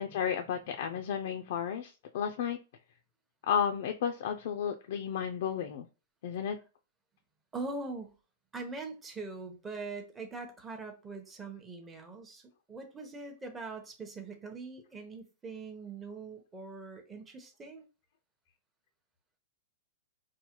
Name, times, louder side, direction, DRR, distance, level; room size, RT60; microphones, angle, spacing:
voice 1, 0.0-2.6 3.4-5.9 6.2-6.6, left 8 dB, 60° left, 5 dB, 0.4 m, -33 dB
voice 2, 7.5-8.1 8.5-12.4 12.7-17.8, right 3 dB, 15° right, 4 dB, 0.8 m, -42 dB
4.5 x 2.1 x 2.9 m, 0.33 s
hypercardioid pair, 135°, 0 cm